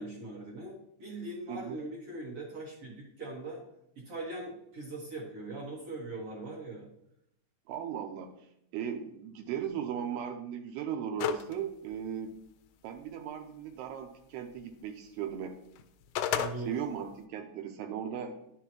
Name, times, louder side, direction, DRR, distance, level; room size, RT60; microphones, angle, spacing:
voice 1, 0.0-3.6 4.0-6.9 16.3-16.7, right 2 dB, 55° right, -4 dB, 1.7 m, -41 dB
voice 2, 1.5-1.8 7.7-8.3 8.7-12.4 12.8-15.6 16.6-18.4, right 8 dB, 85° right, 4 dB, 2.7 m, -37 dB
sound 1, 11.2-11.5 11.9-12.0 15.8-16.5, left 9 dB, 80° left, 2.2 m, -30 dB
10.5 x 6.5 x 3.0 m, 0.76 s
omnidirectional pair, 4.7 m